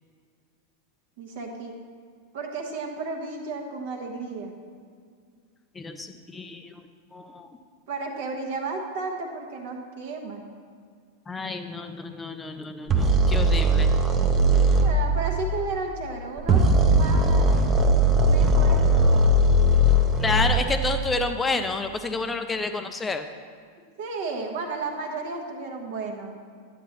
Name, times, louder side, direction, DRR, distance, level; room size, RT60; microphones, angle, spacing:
voice 1, 1.2-1.8 2.3-4.5 7.9-10.4 14.7-17.6 18.2-19.4 24.0-26.4, right 3 dB, 55° right, 3 dB, 1.2 m, -33 dB
voice 2, 5.8-6.7 7.1-7.5 11.3-13.9 20.2-23.2, left 3 dB, 15° left, 7 dB, 0.4 m, -29 dB
sound 1, 12.9-14.9 16.4-20.7, right 1 dB, 25° right, 0.7 m, -19 dB
11.5 x 8.3 x 3.0 m, 2.1 s
figure-of-eight pair, 90°, 0 cm